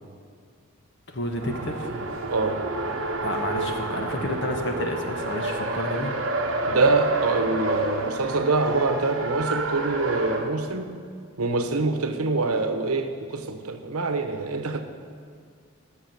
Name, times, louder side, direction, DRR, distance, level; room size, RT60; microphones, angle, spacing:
voice 1, 1.1-1.9 3.2-6.1, left 1 dB, 55° left, 4 dB, 1.3 m, -30 dB
Race car auto racing, 1.3-10.5, right 2 dB, 65° right, 1.2 m, -29 dB
voice 2, 2.3-2.6 6.6-11.0 11.4-14.8, right 3 dB, 85° right, 7 dB, 1.0 m, -25 dB
13.5 x 6.2 x 7.7 m, 2.1 s
head